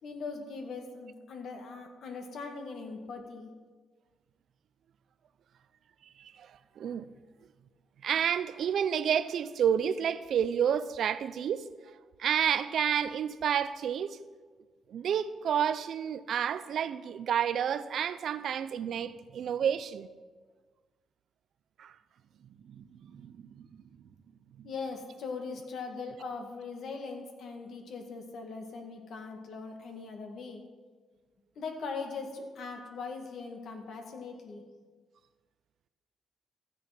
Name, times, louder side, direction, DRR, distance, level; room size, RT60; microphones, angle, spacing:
voice 1, 0.0-3.5 24.6-30.6 31.6-34.6, left 4 dB, 65° left, 2.1 m, -40 dB
voice 2, 6.2-6.5 6.8-7.1 8.0-11.7 12.2-14.2 14.9-20.1 21.8-21.9 22.6-23.7 24.6-24.7, right 8 dB, 65° right, 0.6 m, -30 dB
15.0 x 8.0 x 6.0 m
cardioid pair, 90°, 0 cm